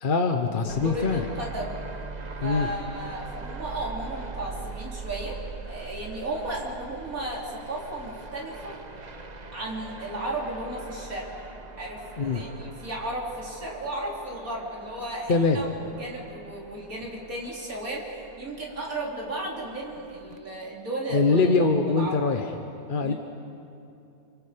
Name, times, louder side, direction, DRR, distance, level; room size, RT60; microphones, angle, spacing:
voice 1, 0.0-1.3 2.4-2.7 12.2-12.4 15.3-15.6 21.1-22.5 22.9-23.1, left 4 dB, 40° left, 6 dB, 0.9 m, -23 dB
voice 2, 0.6-1.7 2.4-5.4 5.6-8.8 9.5-11.3 11.8-22.2 23.0-23.1, right 1 dB, 55° right, -3 dB, 4.1 m, -34 dB
sound 1, 0.7-20.4, right 4 dB, 30° right, 0.9 m, -42 dB
30.0 x 23.5 x 5.1 m, 2.7 s
omnidirectional pair, 1.8 m